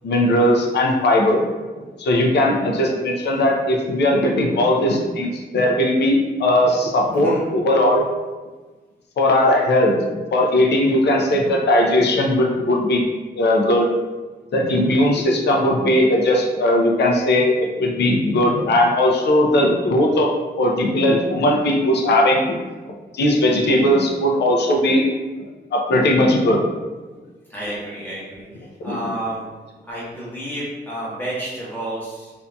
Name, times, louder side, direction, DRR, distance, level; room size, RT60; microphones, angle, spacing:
voice 1, 0.0-1.4 2.0-8.0 9.2-10.0 10.3-13.1 13.4-13.9 14.5-20.3 20.6-22.6 23.1-25.0 25.7-26.6 28.8-29.0, left 1 dB, 70° left, 0 dB, 0.5 m, -18 dB
voice 2, 7.1-7.4 27.5-28.4 28.8-29.4 29.9-32.3, right 1 dB, 10° left, -8 dB, 0.9 m, -30 dB
2.6 x 2.5 x 2.2 m, 1.3 s
wide cardioid pair, 135°, 18 cm